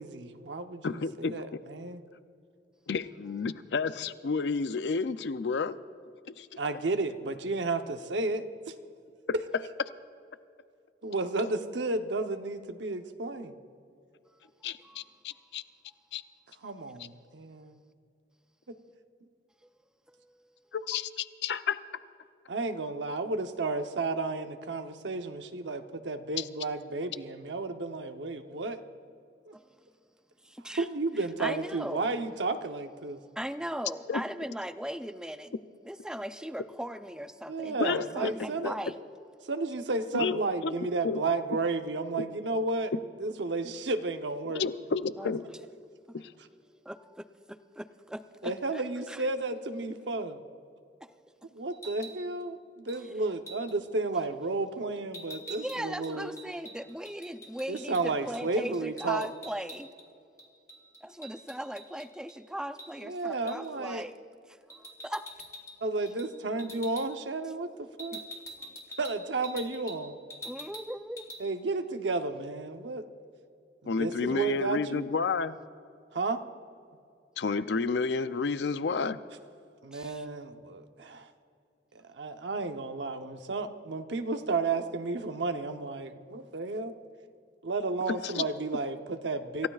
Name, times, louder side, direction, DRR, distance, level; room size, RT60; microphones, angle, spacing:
voice 1, 0.0-2.0 6.6-8.7 11.0-13.5 16.6-17.8 22.5-28.8 29.5-29.6 30.8-33.2 37.5-38.7 39.5-42.9 43.2-44.7 48.4-50.4 51.6-52.6 52.9-56.4 57.7-59.3 63.0-64.1 65.8-68.2 69.0-70.2 71.4-73.0 73.8-75.1 76.1-76.4 79.8-81.3 81.9-86.9 87.6-89.7, right 3 dB, 90° right, 7 dB, 0.8 m, -32 dB
voice 2, 0.8-1.6 2.9-5.8 6.4-6.5 14.6-15.6 16.1-16.2 20.7-21.8 26.4-26.5 34.1-34.2 37.8-38.3 38.6-38.7 40.1-40.7 41.0-41.2 44.5-45.4 46.1-46.3 73.9-75.6 77.4-79.2 88.2-88.4, left 4 dB, 70° left, 13 dB, 0.5 m, -31 dB
voice 3, 31.4-32.1 33.4-35.5 35.8-38.9 45.2-45.3 46.1-46.2 46.9-47.9 48.1-48.8 49.1-49.3 51.0-51.1 55.5-59.9 61.0-64.1 64.5-65.2 68.1-68.2 68.6-68.7 70.4-71.3 74.3-74.5 79.9-80.2, equal, 5° right, 10 dB, 0.5 m, -39 dB
sound 1, 51.7-52.2 52.9-53.0 53.5-53.8 55.1-58.0 58.3-58.5 58.7-60.1 60.4-62.4 62.8-62.9 63.5-63.7 64.7-65.8 66.1-66.3 66.6-67.1 68.0-70.0 70.3-70.9 71.2-71.4, equal, 15° left, 1.8 m, -45 dB
27.5 x 15.5 x 2.4 m, 2.4 s
head